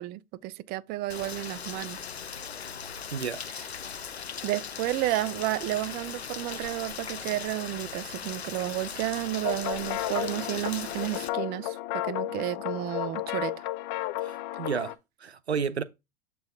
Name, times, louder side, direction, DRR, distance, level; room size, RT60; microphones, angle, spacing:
voice 1, 0.0-2.0 4.4-13.7, right 16 dB, 30° right, 0.5 m, -32 dB
Rain, 1.1-11.3, left 7 dB, 90° left, 0.6 m, -39 dB
voice 2, 3.1-3.4 14.2-14.9 15.2-15.8, right 6 dB, 90° right, 0.7 m, -31 dB
sound 1, 9.4-15.0, left 15 dB, 40° left, 0.6 m, -33 dB
7.6 x 4.6 x 3.5 m
figure-of-eight pair, 90°, 31 cm